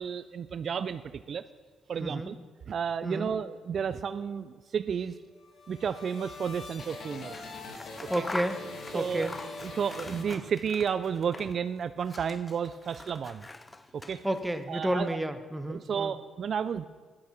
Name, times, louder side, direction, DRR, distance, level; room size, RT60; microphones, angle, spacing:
voice 1, 0.0-1.4 1.9-2.4 2.7-5.1 5.7-7.4 8.0-8.2 8.9-9.3 9.6-13.5 13.9-14.2 14.7-15.2 15.7-16.9, right 7 dB, 55° right, 13 dB, 0.3 m, -32 dB
voice 2, 2.0-2.3 3.0-3.3 8.1-8.6 8.9-9.4 14.2-16.1, right 1 dB, 5° right, 9 dB, 0.9 m, -31 dB
sound 1, 5.3-10.9, left 3 dB, 55° left, 1.8 m, -43 dB
Scissors, 7.2-11.7 12.0-14.6, left 3 dB, 20° left, 0.4 m, -44 dB
10.5 x 8.6 x 6.0 m, 1.4 s
cardioid pair, 90°, 0 cm